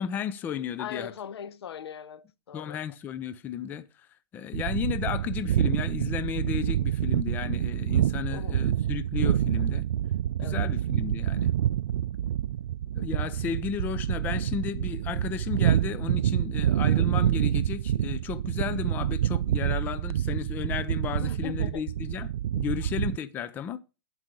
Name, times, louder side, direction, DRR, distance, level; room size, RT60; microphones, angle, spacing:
voice 1, 0.0-1.1 2.5-3.9 4.3-9.8 10.4-11.5 13.0-23.8, left 8 dB, 15° left, 0.5 m, -34 dB
voice 2, 0.8-2.8 8.3-8.6 10.4-10.7 21.2-21.9, left 8 dB, 80° left, 0.8 m, -40 dB
sound 1, 4.5-23.2, right 11 dB, 80° right, 0.4 m, -27 dB
11.5 x 4.8 x 6.7 m
hypercardioid pair, 165°, 13 cm